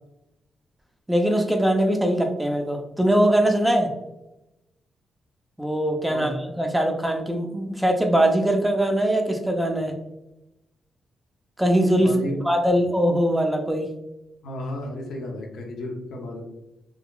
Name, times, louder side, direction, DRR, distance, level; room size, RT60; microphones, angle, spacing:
voice 1, 1.1-3.9 5.6-9.9 11.6-12.2 12.4-13.9, right 1 dB, 5° right, 3 dB, 0.5 m, -21 dB
voice 2, 12.0-12.4 14.4-16.4, left 1 dB, 90° left, 1 dB, 0.6 m, -33 dB
3.7 x 2.0 x 2.3 m, 0.91 s
cardioid pair, 75°, 0 cm